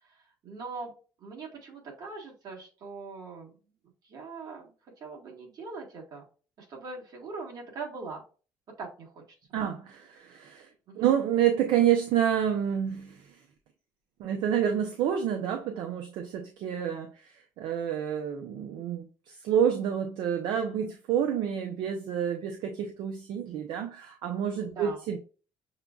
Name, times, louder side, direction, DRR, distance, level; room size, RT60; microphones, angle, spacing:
voice 1, 0.1-0.9 1.2-3.5 4.0-4.7 5.0-6.2 6.6-8.2 8.8-9.2 10.9-11.1 24.6-25.0, right 4 dB, 55° right, -1 dB, 2.0 m, -41 dB
voice 2, 9.5-10.7 11.0-13.4 14.2-25.2, right 9 dB, 75° right, 4 dB, 0.6 m, -28 dB
6.5 x 2.3 x 2.4 m, 0.36 s
cardioid pair, 95°, 8 cm